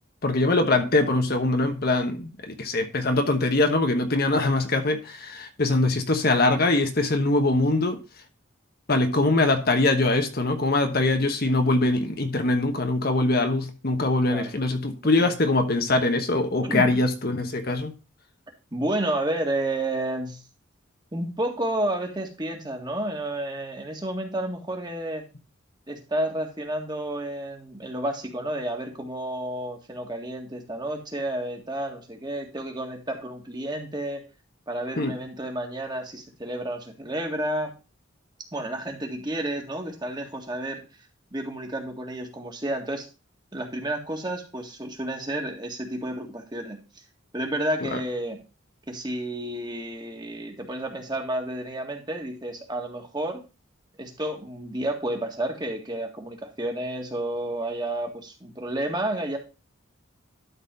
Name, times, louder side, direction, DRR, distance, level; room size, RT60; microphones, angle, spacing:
voice 1, 0.2-8.0 8.9-17.9 35.0-35.2 47.9-48.0, left 2 dB, 50° left, 1.1 m, -23 dB
voice 2, 16.6-17.0 18.7-20.4 21.1-25.2 25.9-34.2 34.7-37.7 38.5-40.8 41.3-43.1 43.5-46.8 47.3-48.4 48.9-53.4 54.0-59.4, right 1 dB, 20° right, 1.8 m, -31 dB
12.5 x 4.1 x 5.2 m
head